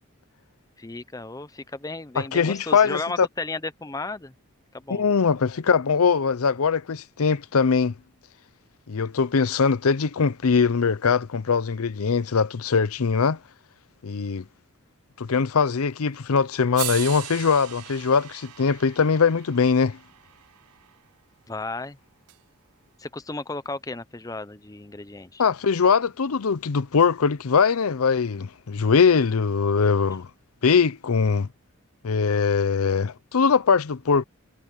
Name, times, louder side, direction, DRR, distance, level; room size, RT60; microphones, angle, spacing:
voice 1, 0.8-4.3 4.7-5.1 21.5-22.0 23.0-25.4, left 3 dB, 15° left, 0.6 m, -34 dB
voice 2, 2.2-3.3 4.9-7.9 8.9-13.4 14.0-14.4 15.2-20.0 25.4-30.3 30.6-31.5 32.0-34.2, left 5 dB, 80° left, 0.6 m, -21 dB
sound 1, 16.1-16.2 16.7-20.9 22.3-22.4, right 16 dB, 90° right, 0.6 m, -38 dB
head